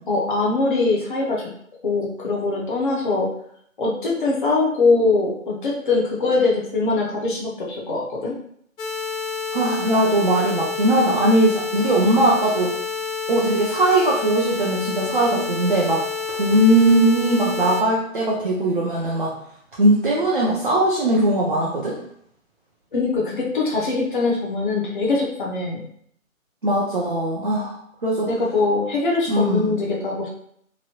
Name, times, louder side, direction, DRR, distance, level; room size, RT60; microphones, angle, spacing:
voice 1, 0.1-1.5 1.8-3.3 3.8-8.4 22.9-25.9 28.3-30.3, left 3 dB, 40° left, -3 dB, 0.5 m, -22 dB
sound 1, 8.8-17.8, left 5 dB, 75° left, 0.7 m, -29 dB
voice 2, 9.5-12.7 13.3-16.0 16.3-19.3 19.7-22.0 26.6-28.3 29.3-29.7, right 1 dB, 40° right, -4 dB, 0.5 m, -19 dB
3.0 x 2.6 x 2.8 m, 0.67 s
figure-of-eight pair, 155°, 41 cm